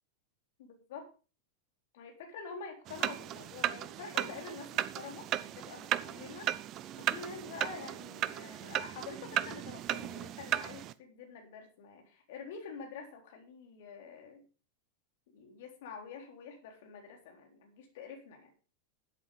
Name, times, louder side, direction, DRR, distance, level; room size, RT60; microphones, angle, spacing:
voice 1, 0.6-1.1 1.9-6.5 7.0-14.4 15.3-18.5, left 5 dB, 55° left, 3 dB, 3.7 m, -47 dB
sound 1, 2.9-10.9, right 12 dB, 35° right, 0.6 m, -36 dB
12.0 x 8.2 x 5.2 m, 0.36 s
figure-of-eight pair, 90°, 0 cm